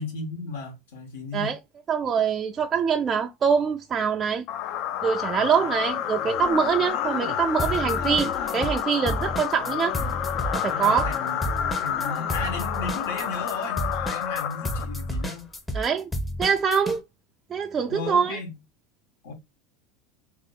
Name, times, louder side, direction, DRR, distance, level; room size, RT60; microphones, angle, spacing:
voice 1, 0.0-1.6 5.4-5.6 10.7-15.5 17.9-18.6 19.2-19.3, left 3 dB, 90° left, 1.5 m, -35 dB
voice 2, 1.9-4.4 5.0-9.9 10.5-11.1 15.7-16.1 16.4-17.0 17.5-18.4, right 6 dB, 30° right, 0.3 m, -24 dB
sound 1, 4.5-15.2, left 9 dB, 55° left, 0.4 m, -29 dB
sound 2, 7.6-8.8 9.1-17.0, equal, 10° left, 0.6 m, -31 dB
2.9 x 2.8 x 3.9 m
supercardioid pair, 120°, 0 cm